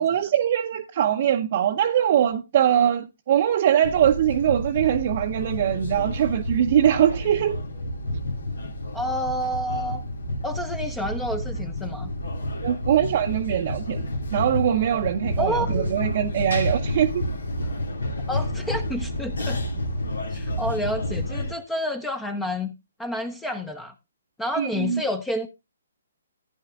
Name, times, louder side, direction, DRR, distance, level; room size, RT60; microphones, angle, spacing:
voice 1, 0.0-7.6 12.6-14.0 14.3-17.2 24.5-25.0, right 10 dB, 45° right, 0.9 m, -22 dB
sound 1, 3.8-21.5, left 1 dB, 75° left, 2.3 m, -30 dB
voice 2, 8.9-10.0 10.4-12.1 15.4-15.9 18.3-19.6 20.3-22.7 23.0-23.9 24.4-25.5, equal, 5° left, 0.9 m, -29 dB
15.0 x 9.8 x 2.4 m
figure-of-eight pair, 135°, 0 cm